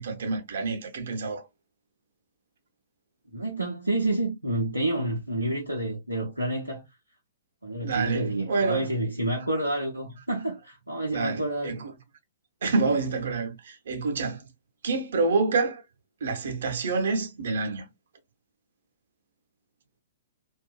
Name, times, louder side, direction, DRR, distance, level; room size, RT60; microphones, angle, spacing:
voice 1, 0.0-1.4 7.8-8.9 11.1-11.9 12.6-14.4 14.8-15.8 16.2-17.9, right 4 dB, 60° right, 0.8 m, -27 dB
voice 2, 3.3-6.8 7.6-11.8, right 1 dB, 90° right, 0.7 m, -29 dB
2.5 x 2.5 x 2.3 m
figure-of-eight pair, 110°, 0 cm